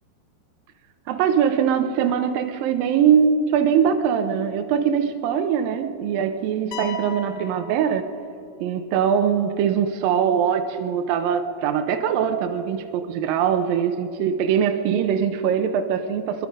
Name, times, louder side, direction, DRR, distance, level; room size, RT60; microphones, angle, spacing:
voice 1, 1.1-8.1 8.6-16.5, right 8 dB, 85° right, 7 dB, 2.0 m, -22 dB
sound 1, 6.7-8.6, left 6 dB, 70° left, 1.9 m, -37 dB
23.5 x 22.5 x 5.3 m, 2.5 s
omnidirectional pair, 5.2 m